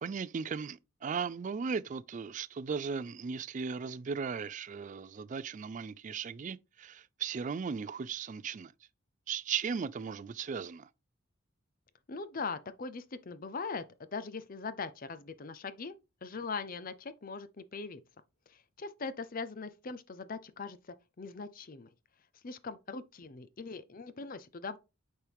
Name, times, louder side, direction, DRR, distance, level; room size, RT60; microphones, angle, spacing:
voice 1, 0.0-8.7 9.3-10.9, right 6 dB, 35° right, 0.3 m, -37 dB
voice 2, 12.1-15.9 16.2-18.0 18.5-21.9 22.4-24.8, left 4 dB, 40° left, 0.6 m, -41 dB
8.2 x 4.4 x 3.5 m
head